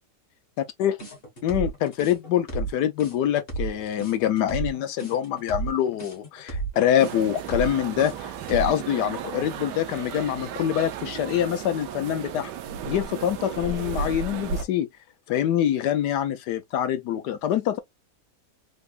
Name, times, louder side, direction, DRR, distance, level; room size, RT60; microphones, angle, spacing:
voice 1, 0.6-1.0 1.4-12.5 12.9-14.9 15.3-17.8, left 10 dB, 75° left, 1.2 m, -25 dB
sound 1, 1.0-8.9, right 4 dB, 35° left, 1.6 m, -33 dB
sound 2, 7.0-14.7, right 7 dB, 80° right, 1.3 m, -34 dB
3.9 x 3.4 x 2.4 m
omnidirectional pair, 1.8 m